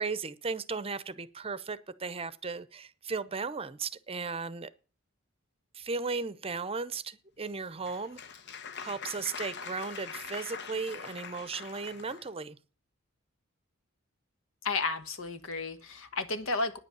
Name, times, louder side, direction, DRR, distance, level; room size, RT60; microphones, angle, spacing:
voice 1, 0.0-4.7 5.7-8.2 8.8-12.6, right 4 dB, 30° right, 0.7 m, -36 dB
Applause, 7.5-12.3, left 6 dB, 60° left, 1.0 m, -43 dB
voice 2, 14.6-16.8, left 3 dB, 75° left, 1.4 m, -32 dB
9.8 x 8.1 x 8.4 m
head